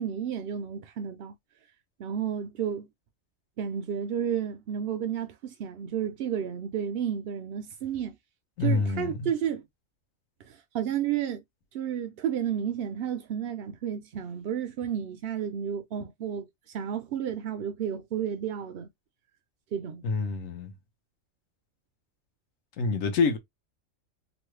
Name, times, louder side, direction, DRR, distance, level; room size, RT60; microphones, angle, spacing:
voice 1, 0.0-1.3 2.0-2.9 3.6-8.2 8.6-9.6 10.5-11.4 11.7-18.9 19.7-20.0, right 9 dB, 65° right, 0.6 m, -32 dB
voice 2, 8.6-9.3 20.0-20.7 22.8-23.4, left 4 dB, 75° left, 1.2 m, -26 dB
3.0 x 2.2 x 3.1 m
omnidirectional pair, 1.4 m